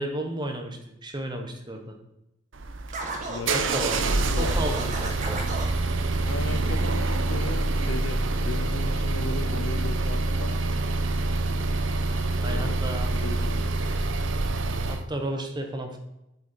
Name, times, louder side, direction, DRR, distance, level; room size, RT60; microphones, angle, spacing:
voice 1, 0.0-2.0 3.5-4.0 4.3-5.4 12.4-13.2 14.9-16.0, right 1 dB, 25° right, 4 dB, 1.2 m, -33 dB
sound 1, 2.5-15.1, right 2 dB, 70° right, 0.7 m, -26 dB
Scratching (performance technique), 2.9-5.7, right 2 dB, 40° right, 1.4 m, -34 dB
voice 2, 3.3-4.7 6.3-10.7 12.4-12.8 13.1-13.7, left 4 dB, 70° left, 13 dB, 0.5 m, -37 dB
8.1 x 5.9 x 4.5 m, 0.87 s
head